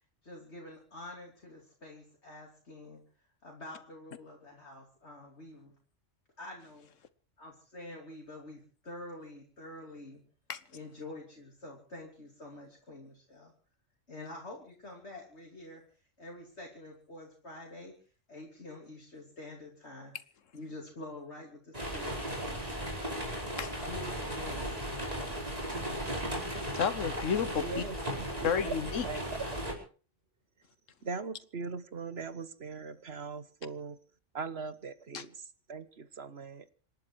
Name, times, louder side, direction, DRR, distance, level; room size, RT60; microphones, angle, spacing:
voice 1, 0.2-3.0 3.4-5.7 6.4-6.9 7.4-10.2 10.7-13.5 14.1-15.8 16.2-17.9 18.3-20.1 20.5-23.2 23.8-25.3, left 2 dB, 60° left, 3.4 m, -47 dB
sound 1, 21.7-29.7, equal, 30° right, 5.1 m, -36 dB
voice 2, 26.7-27.8 28.4-29.1 35.1-35.2, left 7 dB, 85° left, 1.5 m, -31 dB
voice 3, 27.6-28.7 29.0-29.7 31.0-34.0 34.3-36.7, right 4 dB, 55° right, 1.5 m, -40 dB
26.5 x 11.5 x 4.7 m
omnidirectional pair, 1.3 m